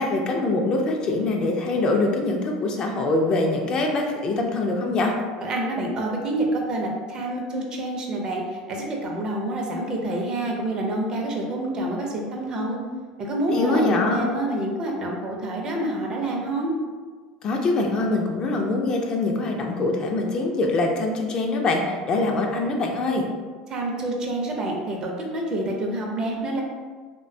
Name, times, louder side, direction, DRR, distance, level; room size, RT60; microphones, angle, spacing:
voice 1, 0.0-5.1 13.5-14.2 17.4-23.2, left 2 dB, 40° left, 2 dB, 0.3 m, -23 dB
voice 2, 5.4-12.8 13.2-16.7 23.7-26.6, right 1 dB, 35° right, 0 dB, 0.5 m, -27 dB
2.5 x 2.1 x 2.5 m, 1.5 s
supercardioid pair, 110°, 2 cm